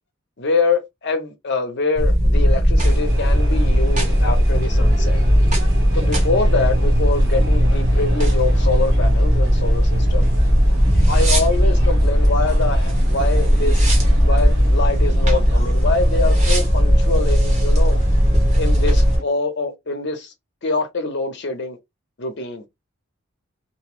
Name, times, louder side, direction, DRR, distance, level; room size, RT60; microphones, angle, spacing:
voice 1, 0.4-5.2 5.9-10.3 11.1-13.9 14.2-18.0 18.6-20.3 20.6-21.8 22.2-22.6, left 3 dB, 60° left, 0.7 m, -24 dB
sound 1, 2.0-19.2, equal, 35° right, 1.0 m, -16 dB
sound 2, 2.8-19.2, right 1 dB, 75° right, 1.4 m, -34 dB
2.6 x 2.0 x 3.0 m
head